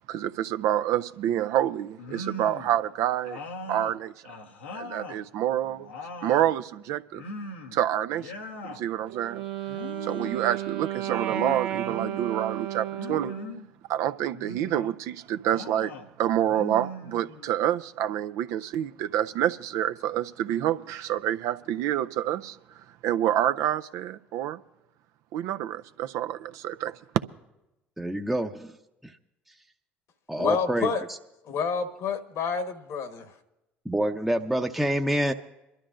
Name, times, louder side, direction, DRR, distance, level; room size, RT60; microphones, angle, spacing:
voice 1, 0.1-3.4 3.7-4.1 4.7-5.9 6.2-7.2 7.7-8.3 8.6-9.4 10.0-13.3 13.9-24.6 25.3-27.0, right 11 dB, 60° right, 0.4 m, -28 dB
sound 1, 2.0-2.8 3.2-5.2 5.6-6.6 7.1-7.8 8.1-8.8 9.7-10.5 11.3-12.2 12.9-13.7 14.3-14.9 15.5-16.1 16.5-17.6, left 2 dB, 85° left, 1.1 m, -40 dB
Wind instrument woodwind instrument, 9.1-13.6, right 12 dB, 80° right, 0.9 m, -33 dB
voice 2, 28.0-28.7 29.0-29.1 30.3-30.9 33.8-35.3, right 1 dB, 5° right, 0.7 m, -27 dB
voice 3, 30.4-31.0 31.4-33.4, left 6 dB, 60° left, 1.3 m, -29 dB
27.0 x 12.0 x 2.5 m
hypercardioid pair, 60°, 6 cm